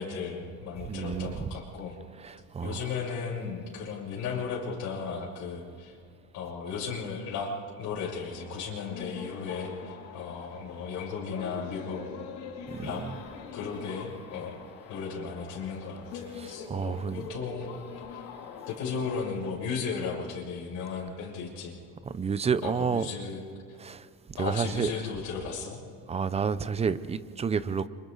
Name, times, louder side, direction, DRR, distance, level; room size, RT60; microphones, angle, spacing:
voice 1, 0.0-2.0 2.6-5.9 6.3-12.0 12.8-13.0 13.5-14.6 14.9-18.2 18.7-21.8 22.6-23.4 24.4-25.8, left 5 dB, 55° left, 6.6 m, -35 dB
voice 2, 0.9-1.5 2.2-2.9 12.7-13.1 16.3-17.3 22.0-23.1 23.8-24.1 24.4-24.9 26.1-27.9, right 6 dB, 20° right, 0.6 m, -30 dB
sound 1, 8.0-19.5, left 6 dB, 75° left, 4.1 m, -44 dB
30.0 x 26.5 x 4.0 m
cardioid pair, 150°, 36 cm